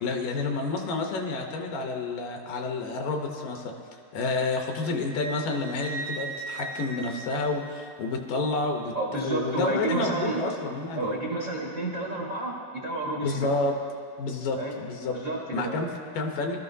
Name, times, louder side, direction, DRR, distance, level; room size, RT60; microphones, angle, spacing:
voice 1, 0.0-3.7 4.1-11.2 13.2-13.8 14.2-15.1 15.5-16.6, left 3 dB, 70° left, 3 dB, 2.4 m, -29 dB
Wind instrument woodwind instrument, 4.7-8.2, right 3 dB, 90° left, 3.5 m, -39 dB
voice 2, 8.9-10.4 10.9-13.4 14.5-14.7 15.1-15.8, right 2 dB, 85° right, -3 dB, 1.0 m, -30 dB
22.0 x 13.0 x 2.7 m, 2.2 s
omnidirectional pair, 4.3 m